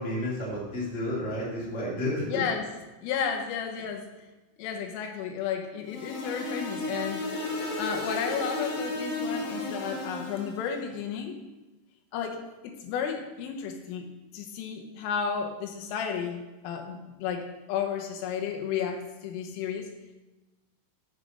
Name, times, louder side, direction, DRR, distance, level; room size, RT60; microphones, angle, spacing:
voice 1, 0.0-2.4, left 1 dB, 20° left, -6 dB, 2.0 m, -31 dB
voice 2, 2.3-2.7 3.0-4.1 4.6-7.3 7.8-11.4 12.1-14.1 14.3-19.9, left 7 dB, 90° left, 3 dB, 3.6 m, -33 dB
sound 1, 5.9-10.7, left 2 dB, 55° left, 2.7 m, -33 dB
7.5 x 6.4 x 6.4 m, 1.1 s
omnidirectional pair, 5.6 m